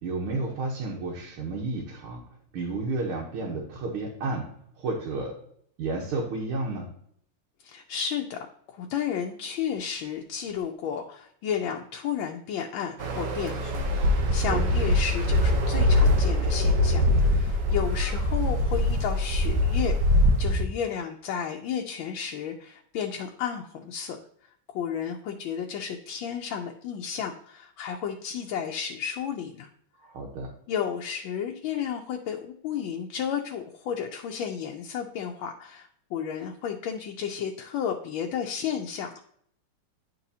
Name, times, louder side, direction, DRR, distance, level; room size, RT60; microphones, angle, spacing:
voice 1, 0.0-2.2 2.5-4.5 4.8-5.4 5.8-6.9 14.5-14.6 30.0-30.5, right 3 dB, 90° right, -2 dB, 1.9 m, -31 dB
voice 2, 7.6-8.4 8.7-20.0 20.4-24.2 24.7-29.7 30.7-39.2, left 8 dB, 75° left, 2 dB, 1.3 m, -32 dB
sound 1, 13.0-20.6, left 1 dB, 65° right, 0.8 m, -23 dB
9.9 x 4.1 x 2.7 m, 0.67 s
omnidirectional pair, 2.3 m